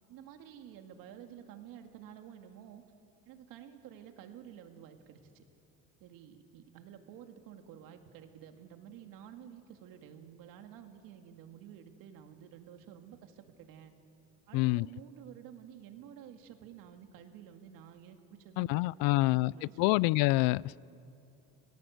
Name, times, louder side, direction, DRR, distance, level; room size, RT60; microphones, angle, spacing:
voice 1, 0.1-2.8 3.3-5.4 6.0-13.9 14.5-20.0, right 9 dB, 70° right, 6 dB, 2.3 m, -51 dB
voice 2, 14.5-14.9 18.6-19.5 19.8-20.8, left 21 dB, 85° left, 24 dB, 0.5 m, -26 dB
29.0 x 18.5 x 8.0 m, 2.7 s
cardioid pair, 150°, 35 cm